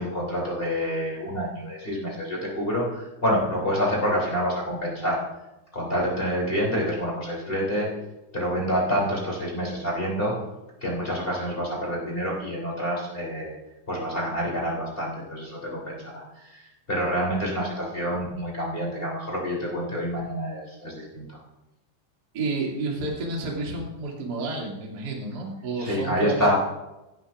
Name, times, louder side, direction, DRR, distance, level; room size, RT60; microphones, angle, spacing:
voice 1, 0.0-5.2 5.7-7.9 8.3-10.3 10.8-13.6 13.9-21.4 25.8-26.5, equal, 15° left, -4 dB, 2.6 m, -27 dB
voice 2, 22.3-26.5, right 3 dB, 30° right, -3 dB, 2.2 m, -30 dB
17.0 x 11.5 x 2.5 m, 0.96 s
omnidirectional pair, 5.2 m